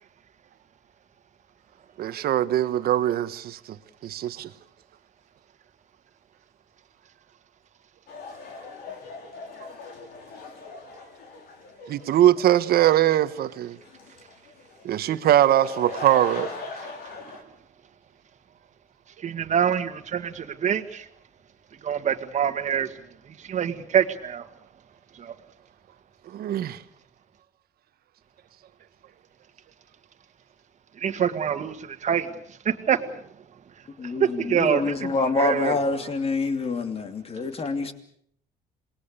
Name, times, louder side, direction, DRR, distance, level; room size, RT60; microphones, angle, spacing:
voice 1, 2.0-3.8 4.0-4.5 11.9-13.8 14.8-16.5 26.3-26.8, right 12 dB, 65° right, 1.3 m, -22 dB
sound 1, 8.1-17.4, left 4 dB, 70° left, 5.1 m, -41 dB
voice 2, 19.2-21.1 21.8-22.9 23.5-24.5 25.2-25.3 31.0-32.3 32.7-33.1 34.2-34.8 35.4-35.7, right 8 dB, 45° right, 1.9 m, -25 dB
voice 3, 34.0-37.9, left 3 dB, 35° left, 2.8 m, -26 dB
27.5 x 21.0 x 6.9 m
cardioid pair, 110°, 17 cm